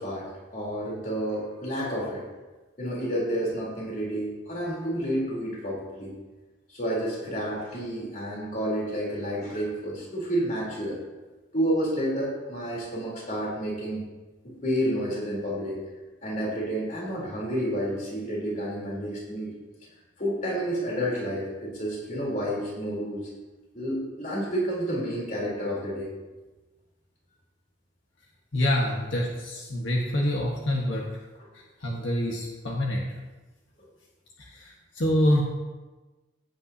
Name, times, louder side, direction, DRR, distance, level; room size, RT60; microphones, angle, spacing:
voice 1, 0.0-2.2 2.8-6.1 6.7-11.0 11.5-14.0 14.6-15.8 16.2-19.5 20.2-23.3 23.7-26.1, equal, 45° left, -4 dB, 3.8 m, -30 dB
voice 2, 28.5-31.0 31.8-33.1 34.5-35.4, left 1 dB, 85° left, -2 dB, 1.5 m, -26 dB
15.5 x 8.9 x 2.9 m, 1.2 s
head